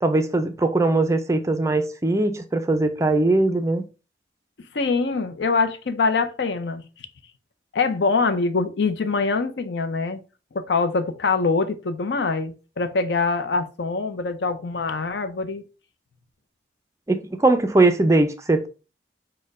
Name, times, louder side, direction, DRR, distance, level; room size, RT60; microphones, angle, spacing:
voice 1, 0.0-3.8 17.1-18.7, right 2 dB, 15° right, 0.4 m, -20 dB
voice 2, 4.7-7.1 7.7-10.2 10.5-15.6, left 4 dB, 70° left, 0.5 m, -24 dB
4.3 x 2.2 x 4.6 m
head